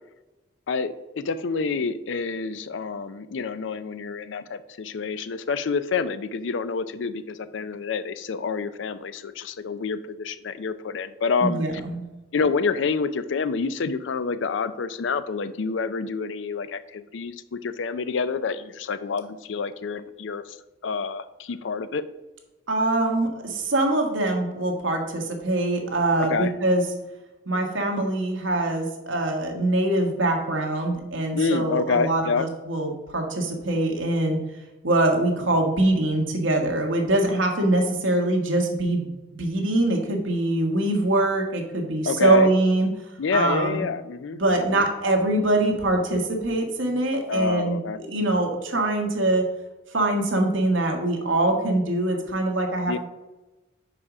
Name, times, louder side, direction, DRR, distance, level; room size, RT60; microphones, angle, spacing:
voice 1, 0.7-11.6 12.3-20.6 20.8-22.0 26.2-26.5 31.3-32.5 42.1-42.5 43.2-44.9 47.3-48.0 52.9-53.0, left 5 dB, 80° left, 13 dB, 0.4 m, -28 dB
voice 2, 11.4-12.0 22.7-26.8 27.5-34.4 34.8-39.1 39.4-42.9 43.3-43.8 44.4-49.4 49.9-52.9, right 2 dB, 85° right, 2 dB, 1.4 m, -23 dB
5.0 x 4.8 x 5.9 m, 1.1 s
head